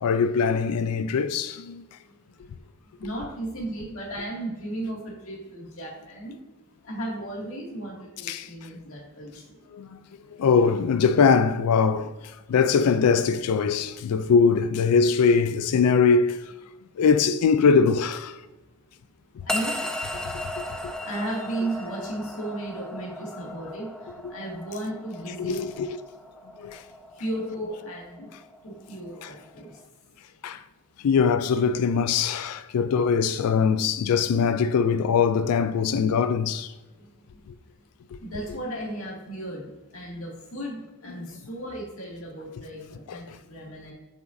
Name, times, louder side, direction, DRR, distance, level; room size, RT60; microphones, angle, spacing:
voice 1, 0.0-1.8 8.3-8.5 9.7-10.0 10.4-12.1 12.5-16.4 17.0-18.4 25.4-26.0 26.6-26.8 30.4-30.6 31.0-36.7 43.1-43.2, left 5 dB, 90° left, 0.4 m, -22 dB
voice 2, 3.0-6.3 6.8-9.6 19.5-19.8 21.1-23.9 24.3-25.6 27.2-28.3 28.6-29.7 38.2-43.9, right 1 dB, 65° left, 2.2 m, -35 dB
sound 1, 19.5-29.8, left 1 dB, 5° left, 0.4 m, -37 dB
7.6 x 5.8 x 2.6 m
head